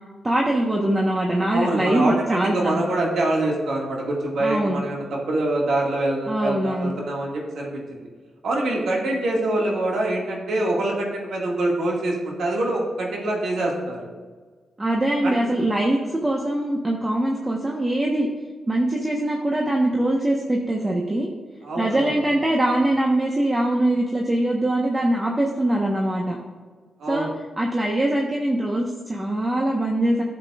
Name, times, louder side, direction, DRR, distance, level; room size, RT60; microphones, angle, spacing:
voice 1, 0.2-2.8 4.4-4.8 6.3-6.9 14.8-18.3 18.7-21.3 21.7-26.4 27.1-27.3 27.6-30.2, right 1 dB, 25° right, -1 dB, 1.2 m, -22 dB
voice 2, 1.5-8.0 8.4-14.0 15.2-15.4 21.6-22.1 27.0-27.3, right 1 dB, 75° right, -2 dB, 2.1 m, -25 dB
12.5 x 7.4 x 2.5 m, 1.5 s
cardioid pair, 65°, 0 cm